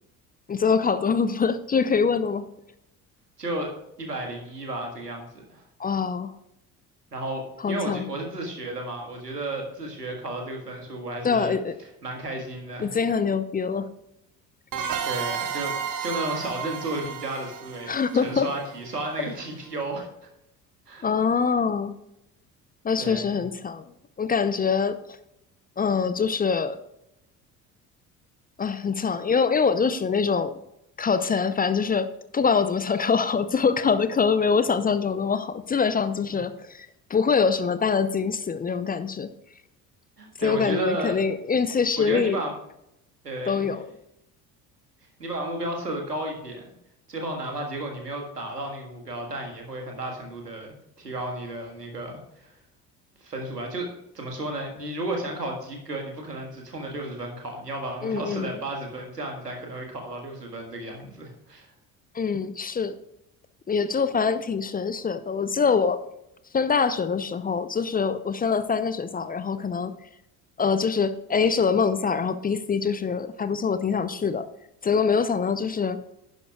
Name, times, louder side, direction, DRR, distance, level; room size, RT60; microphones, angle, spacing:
voice 1, 0.5-2.5 5.8-6.3 7.6-8.1 11.2-11.8 12.8-13.9 17.9-18.5 21.0-21.9 22.8-23.8 24.2-25.0 25.8-26.8 28.6-30.5 31.0-39.3 40.4-42.4 43.5-43.8 58.0-58.6 62.1-62.9 63.7-66.0 66.5-69.9 70.6-74.5 74.8-76.0, left 5 dB, 20° left, 12 dB, 0.6 m, -24 dB
voice 2, 3.4-3.7 4.0-5.6 7.1-11.5 12.0-12.9 15.0-20.1 20.9-21.1 23.0-23.4 36.3-36.4 40.2-41.2 42.0-42.5 43.2-43.7 45.2-46.7 47.1-52.5 53.2-61.7, right 1 dB, 85° right, 2 dB, 1.8 m, -33 dB
sound 1, 14.7-19.2, right 7 dB, 40° right, 1.4 m, -32 dB
11.0 x 10.5 x 2.3 m, 0.82 s
figure-of-eight pair, 55°, 47 cm